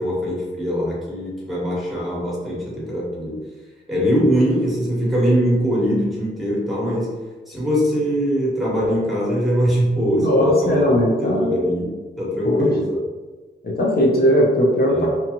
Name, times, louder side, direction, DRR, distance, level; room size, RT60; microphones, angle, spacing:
voice 1, 0.0-3.4 3.9-7.2 7.5-10.9 11.2-13.0 14.9-15.1, equal, ahead, -6 dB, 1.1 m, -22 dB
voice 2, 10.2-11.5 12.4-12.7 13.6-15.1, equal, 50° left, -3 dB, 0.7 m, -18 dB
2.7 x 2.3 x 2.8 m, 1.3 s
cardioid pair, 70°, 20 cm